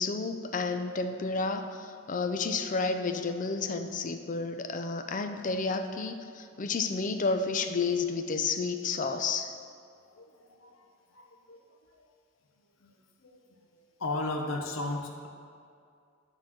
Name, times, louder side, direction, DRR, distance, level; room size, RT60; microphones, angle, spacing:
voice 1, 0.0-9.5, left 4 dB, 40° left, 7 dB, 0.5 m, -31 dB
voice 2, 10.1-10.8 11.1-11.6 12.0-12.1 12.8-12.9 13.2-13.4 13.7-15.3, left 2 dB, 70° left, 2 dB, 0.9 m, -36 dB
9.9 x 4.0 x 6.0 m, 2.3 s
head